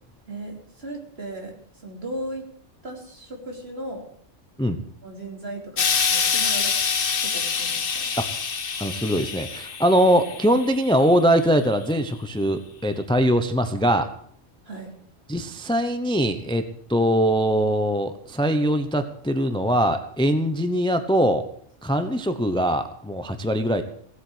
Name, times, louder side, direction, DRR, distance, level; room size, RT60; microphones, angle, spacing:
voice 1, 0.3-1.5 1.8-2.5 2.8-4.1 5.0-6.8 7.2-8.1 14.6-14.9, right 1 dB, 50° right, 1 dB, 3.4 m, -36 dB
Explosion, 5.8-11.1 11.9-12.0, left 6 dB, 50° left, 1.1 m, -26 dB
voice 2, 8.8-14.1 15.3-21.5 21.8-23.8, equal, 5° left, 8 dB, 0.8 m, -22 dB
17.0 x 8.1 x 8.1 m, 0.63 s
omnidirectional pair, 1.3 m